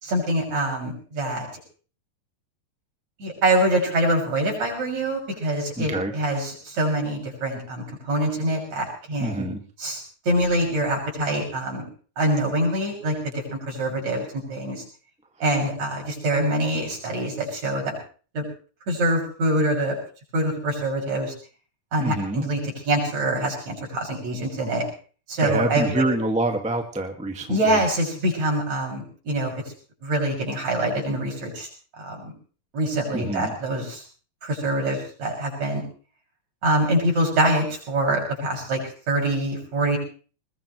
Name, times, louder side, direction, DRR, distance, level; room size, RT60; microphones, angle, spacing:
voice 1, 0.0-1.5 3.2-9.5 9.8-11.9 12.2-14.8 15.4-17.9 18.3-18.5 18.9-20.0 20.3-21.3 21.9-24.8 25.3-26.0 27.5-29.6 30.0-31.7 32.0-32.3 32.7-34.0 34.4-35.8 36.6-38.8 39.1-40.0, right 1 dB, 60° right, 0 dB, 7.6 m, -25 dB
voice 2, 5.8-6.1 9.2-9.6 22.0-22.5 25.4-27.8 33.1-33.5, right 1 dB, 5° right, 4 dB, 1.0 m, -26 dB
21.5 x 20.5 x 3.2 m, 0.39 s
omnidirectional pair, 3.6 m